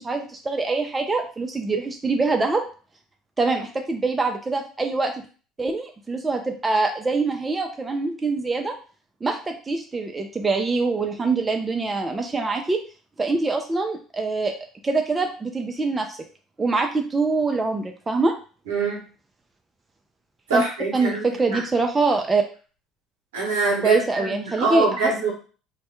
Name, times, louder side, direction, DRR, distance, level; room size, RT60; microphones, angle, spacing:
voice 1, 0.0-2.7 3.4-5.1 5.6-8.7 9.2-12.8 13.2-14.5 14.8-16.2 16.6-18.3 20.5-20.6 20.9-22.4 23.8-25.3, right 3 dB, 20° right, 4 dB, 0.4 m, -24 dB
voice 2, 18.7-19.0 20.5-21.6 23.3-25.3, right 3 dB, 80° right, -1 dB, 0.8 m, -24 dB
2.2 x 2.1 x 2.9 m, 0.38 s
hypercardioid pair, 60°, 0 cm